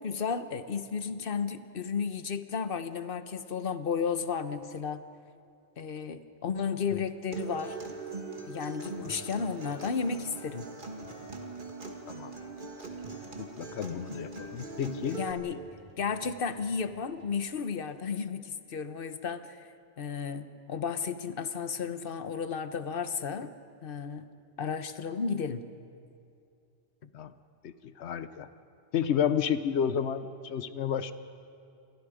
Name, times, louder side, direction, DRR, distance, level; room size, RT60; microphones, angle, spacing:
voice 1, 0.0-5.0 5.8-7.8 8.4-10.7 15.1-15.6 16.0-19.6 20.0-23.5 23.8-24.3 24.6-25.7, left 6 dB, 55° left, 11 dB, 1.1 m, -33 dB
Acoustic guitar, 7.3-15.3, right 3 dB, 50° right, 2.2 m, -41 dB
sound 1, 12.3-17.5, equal, 35° right, 3.2 m, -58 dB
voice 2, 13.4-15.2 27.1-27.3 27.6-28.5 28.9-31.1, left 8 dB, 80° left, 12 dB, 1.1 m, -31 dB
28.5 x 23.5 x 5.1 m, 2.5 s
omnidirectional pair, 1.1 m